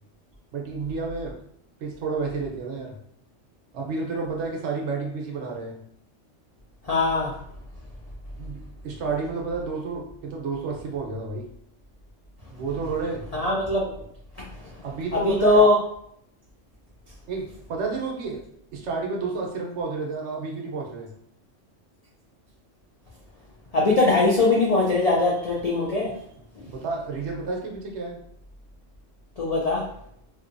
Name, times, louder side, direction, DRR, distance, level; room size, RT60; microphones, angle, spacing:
voice 1, 0.5-1.4 1.8-3.0 3.7-5.8 8.4-11.5 12.5-13.3 14.8-15.7 17.3-18.4 18.7-21.1 26.7-28.2, right 4 dB, 70° right, 0 dB, 0.9 m, -30 dB
voice 2, 6.8-7.3 13.3-13.9 15.1-15.8 23.7-26.1 29.4-29.8, left 2 dB, 90° left, -4 dB, 0.3 m, -21 dB
2.7 x 2.2 x 2.5 m, 0.71 s
omnidirectional pair, 1.3 m